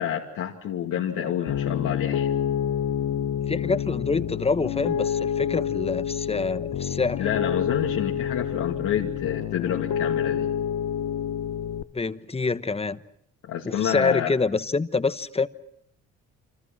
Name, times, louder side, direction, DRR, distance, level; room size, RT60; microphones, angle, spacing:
voice 1, 0.0-2.3 7.2-10.5 13.5-14.3, left 9 dB, 85° left, 2.5 m, -28 dB
Piano, 1.5-11.8, left 9 dB, 70° left, 1.1 m, -28 dB
voice 2, 3.5-7.2 11.9-13.0 13.6-15.5, left 4 dB, 20° left, 1.1 m, -26 dB
28.5 x 25.5 x 6.1 m
cardioid pair, 90°, 30 cm